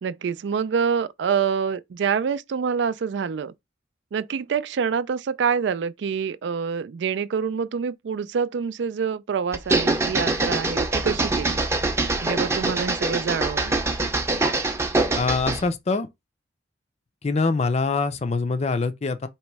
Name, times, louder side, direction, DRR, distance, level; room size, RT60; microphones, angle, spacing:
voice 1, 0.0-3.5 4.1-11.6 12.2-13.8, right 6 dB, 70° right, 0.3 m, -26 dB
sound 1, 9.5-15.7, right 2 dB, 15° right, 0.6 m, -24 dB
voice 2, 15.2-16.1 17.2-19.3, left 4 dB, 35° left, 0.5 m, -24 dB
3.1 x 3.0 x 4.6 m
head